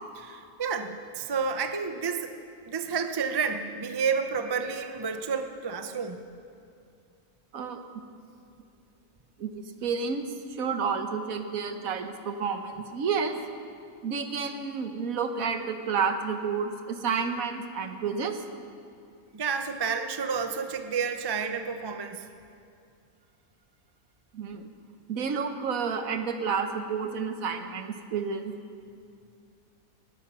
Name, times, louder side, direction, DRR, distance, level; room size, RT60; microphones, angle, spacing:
voice 1, 0.1-2.3 2.7-6.2 19.3-22.3, right 6 dB, 25° right, 7 dB, 0.5 m, -30 dB
voice 2, 9.4-10.2 10.6-13.3 14.0-18.4 24.3-24.7 25.1-28.5, right 5 dB, 70° right, 7 dB, 1.4 m, -30 dB
19.5 x 10.5 x 6.1 m, 2.5 s
omnidirectional pair, 1.5 m